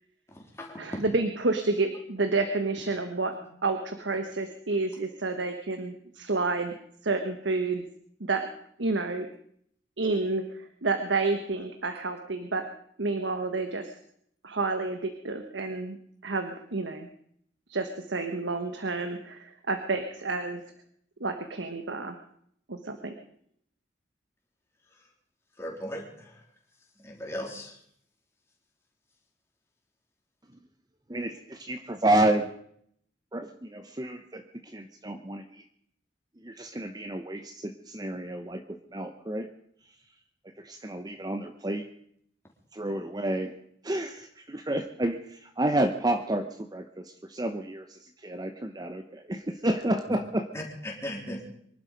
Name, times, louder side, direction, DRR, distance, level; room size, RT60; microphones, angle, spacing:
voice 1, 0.8-3.4 3.6-6.7 7.0-7.8 8.2-8.5 8.8-9.3 10.0-12.7 13.0-13.9 14.4-16.0 16.2-17.1 17.7-20.6 21.2-22.2 22.7-23.1, right 3 dB, 85° right, 7 dB, 1.3 m, -29 dB
voice 2, 25.6-26.3 27.0-27.7 50.1-50.2 50.5-51.4, equal, 15° left, 0 dB, 3.2 m, -37 dB
voice 3, 31.1-32.5 33.3-35.4 36.4-38.6 38.9-39.5 40.6-41.8 42.7-43.5 43.8-47.0 47.3-50.5, right 1 dB, 20° right, 7 dB, 0.8 m, -30 dB
24.0 x 11.5 x 5.2 m, 0.68 s
head